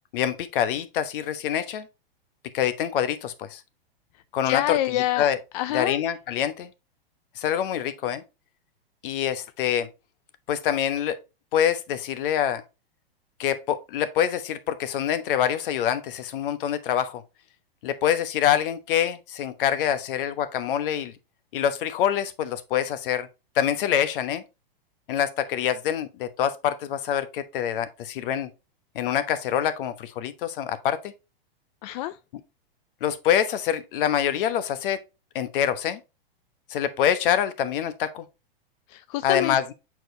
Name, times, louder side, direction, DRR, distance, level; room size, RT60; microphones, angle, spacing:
voice 1, 0.1-1.9 2.5-3.6 4.3-4.8 5.2-5.4 5.7-6.7 7.4-8.2 9.0-9.9 10.5-11.2 11.5-12.6 13.4-17.2 17.8-21.1 21.5-23.3 23.5-24.4 25.1-28.5 28.9-31.1 33.0-35.0 35.3-36.0 36.7-38.3 39.2-39.7, left 9 dB, 60° left, 1.1 m, -25 dB
voice 2, 4.1-5.3 5.5-6.0 31.8-32.2 38.9-39.6, left 14 dB, 45° left, 0.4 m, -27 dB
7.6 x 4.7 x 2.8 m
hypercardioid pair, 120°, 30 cm